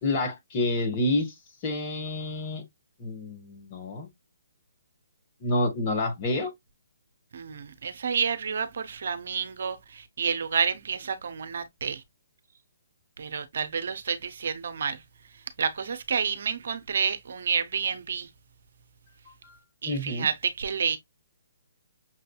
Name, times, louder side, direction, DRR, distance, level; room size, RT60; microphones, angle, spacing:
voice 1, 0.0-1.3 1.6-2.6 3.0-4.1 5.4-6.5 19.4-19.6 19.8-20.3, left 2 dB, 30° left, 1.3 m, -28 dB
voice 2, 7.3-12.0 13.2-15.0 15.6-18.3 19.8-21.0, right 6 dB, 60° right, 0.5 m, -29 dB
6.1 x 2.6 x 2.2 m
figure-of-eight pair, 135°, 0 cm